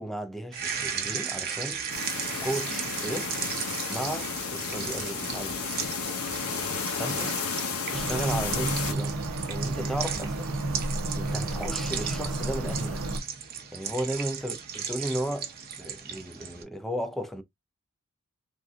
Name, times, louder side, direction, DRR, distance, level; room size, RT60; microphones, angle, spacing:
voice 1, 0.0-2.1 2.4-3.3 3.9-5.8 7.0-7.3 7.9-9.2 9.5-10.6 11.2-13.1 13.7-15.5 15.8-17.4, right 1 dB, ahead, 0.4 m, -34 dB
sound 1, 0.5-16.6, right 7 dB, 45° right, 0.7 m, -36 dB
sound 2, 1.9-8.9, left 5 dB, 75° left, 0.9 m, -32 dB
sound 3, 7.9-13.2, right 2 dB, 90° right, 0.7 m, -31 dB
3.5 x 2.6 x 2.4 m
head